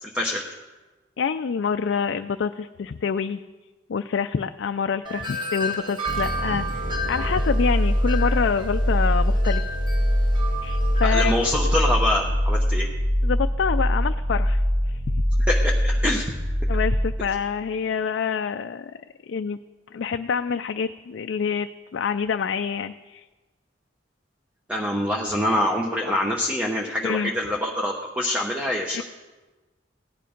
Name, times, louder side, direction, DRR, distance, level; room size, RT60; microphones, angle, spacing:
voice 1, 0.0-0.4 11.0-12.9 15.5-16.2 24.7-29.0, left 1 dB, 5° right, 0 dB, 1.0 m, -25 dB
voice 2, 1.2-3.4 3.9-9.6 10.6-11.5 13.2-15.2 16.7-18.9 19.3-19.6 19.9-23.2 27.0-27.3 28.9-29.0, left 6 dB, 70° left, 8 dB, 0.4 m, -27 dB
Wind chime, 5.0-11.8, equal, 25° right, 1.7 m, -33 dB
sound 1, 6.1-17.5, equal, 55° right, 4.8 m, -23 dB
16.5 x 10.0 x 5.1 m, 1.2 s
head